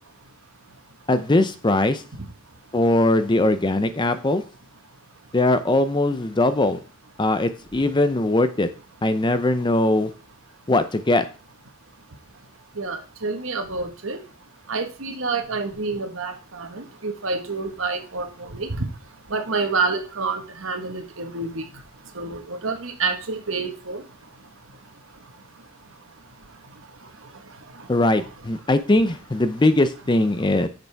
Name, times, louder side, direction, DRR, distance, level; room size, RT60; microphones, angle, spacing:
voice 1, 1.1-2.0 2.7-4.4 5.3-6.8 7.2-8.7 9.0-10.1 10.7-11.2 27.9-30.7, left 2 dB, 20° left, 11 dB, 0.5 m, -20 dB
voice 2, 12.8-14.2 14.7-18.3 18.5-18.8 19.3-21.6 22.2-24.0, right 3 dB, 65° right, 6 dB, 1.4 m, -28 dB
10.0 x 6.7 x 3.5 m, 0.35 s
head